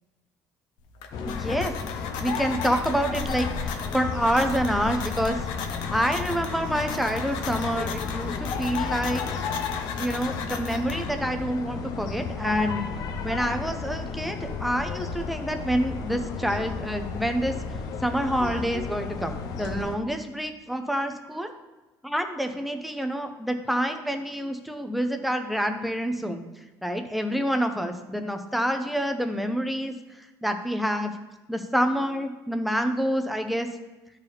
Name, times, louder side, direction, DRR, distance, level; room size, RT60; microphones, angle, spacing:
sound 1, 0.8-11.4, left 6 dB, 85° left, 1.0 m, -37 dB
sound 2, 1.1-19.9, left 5 dB, 55° left, 0.7 m, -33 dB
voice 1, 1.3-1.7 2.2-5.4 5.9-9.2 10.0-12.8 13.2-17.5 18.0-21.5 22.0-26.4 26.8-29.9 30.4-31.1 31.5-33.7, equal, ahead, 6 dB, 0.6 m, -27 dB
13.0 x 4.6 x 3.5 m, 1.1 s
cardioid pair, 155°, 8 cm